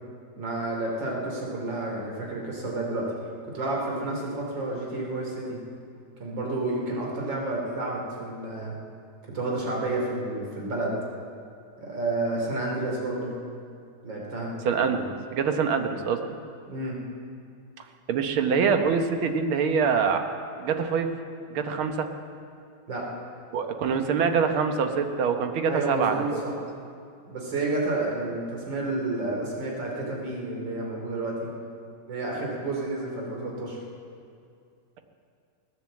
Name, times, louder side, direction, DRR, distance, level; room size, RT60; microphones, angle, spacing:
voice 1, 0.4-3.1 3.5-5.6 6.2-8.7 9.3-11.0 11.8-13.3 14.0-14.5 16.7-17.0 22.9-23.0 25.7-26.5 27.3-31.5 32.1-33.8, right 2 dB, 60° right, -2 dB, 3.6 m, -30 dB
voice 2, 14.7-16.4 18.1-20.2 20.6-21.1 21.5-22.1 23.5-26.4, right 6 dB, 85° right, 6 dB, 1.9 m, -25 dB
17.5 x 10.5 x 7.7 m, 2.4 s
omnidirectional pair, 2.2 m